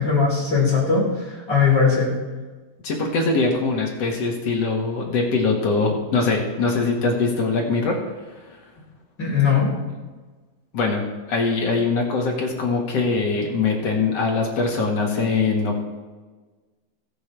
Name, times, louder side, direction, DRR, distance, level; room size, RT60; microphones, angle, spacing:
voice 1, 0.0-2.1 9.2-9.7, left 5 dB, 25° left, -5 dB, 4.3 m, -19 dB
voice 2, 2.8-8.0 10.7-11.0 11.3-15.8, left 4 dB, 50° left, 0 dB, 2.2 m, -22 dB
21.5 x 7.7 x 3.4 m, 1.3 s
omnidirectional pair, 4.6 m